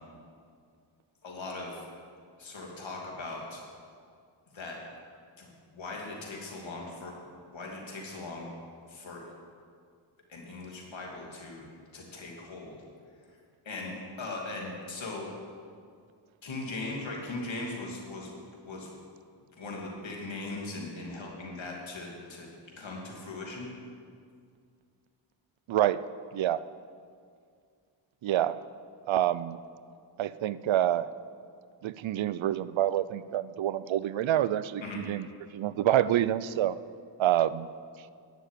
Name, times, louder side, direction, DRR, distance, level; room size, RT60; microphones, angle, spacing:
voice 1, 1.2-1.8 2.4-3.6 4.5-4.8 5.4-7.1 7.5-8.5 8.9-9.2 10.3-12.8 13.6-15.3 16.4-18.3 18.6-18.9 19.6-22.5 22.8-23.7 34.8-35.0, left 2 dB, 75° left, -1 dB, 2.8 m, -39 dB
voice 2, 25.7-26.0 26.3-26.6 28.2-28.6 29.1-29.6 30.2-31.1 31.8-35.3 35.5-36.8 37.2-37.7, right 12 dB, 80° right, 17 dB, 0.5 m, -27 dB
11.0 x 7.1 x 9.1 m, 2.2 s
cardioid pair, 70°, 46 cm